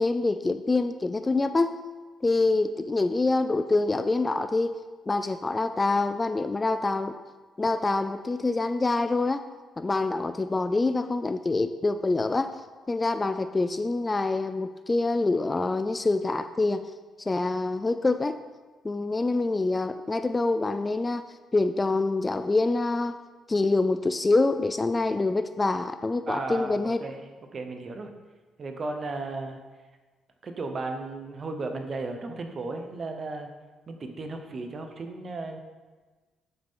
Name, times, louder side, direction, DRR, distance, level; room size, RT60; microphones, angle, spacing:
voice 1, 0.0-1.8 2.2-4.7 5.1-7.1 7.6-9.4 9.8-12.6 12.9-16.9 17.3-18.4 18.8-21.2 21.5-23.1 23.5-27.0, left 3 dB, 25° left, 9 dB, 0.3 m, -26 dB
voice 2, 26.3-27.2 27.5-28.1 28.6-29.6 30.4-33.5 33.9-35.6, right 3 dB, 45° right, 5 dB, 0.9 m, -35 dB
6.8 x 6.5 x 3.8 m, 1.3 s
cardioid pair, 90°, 0 cm